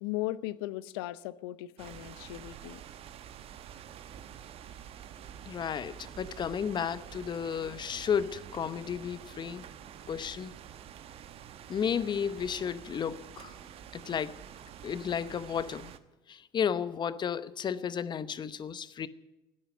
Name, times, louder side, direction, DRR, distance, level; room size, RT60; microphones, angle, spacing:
voice 1, 0.0-2.8, left 16 dB, 75° left, 0.7 m, -37 dB
sound 1, 1.8-16.0, right 9 dB, 50° right, 1.1 m, -48 dB
voice 2, 5.5-9.7 10.1-10.6 11.7-13.6 13.9-14.4 14.8-15.9 16.3-19.1, left 7 dB, 35° left, 0.9 m, -33 dB
13.0 x 9.9 x 9.4 m
hypercardioid pair, 75°, 13 cm